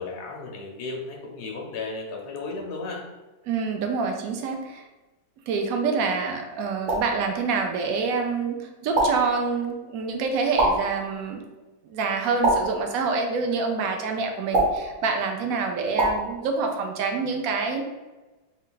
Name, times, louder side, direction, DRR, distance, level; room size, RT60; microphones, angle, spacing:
voice 1, 0.0-3.0, left 3 dB, 70° left, 0 dB, 0.5 m, -34 dB
voice 2, 3.4-4.9 5.5-11.4 11.8-17.8, right 4 dB, 70° right, 3 dB, 0.8 m, -26 dB
sound 1, 6.9-7.2 9.0-9.3 10.6-11.0 12.4-12.9 14.5-14.9 16.0-16.3, right 1 dB, 45° right, 1.1 m, -23 dB
4.4 x 2.4 x 3.8 m, 1.2 s
omnidirectional pair, 2.1 m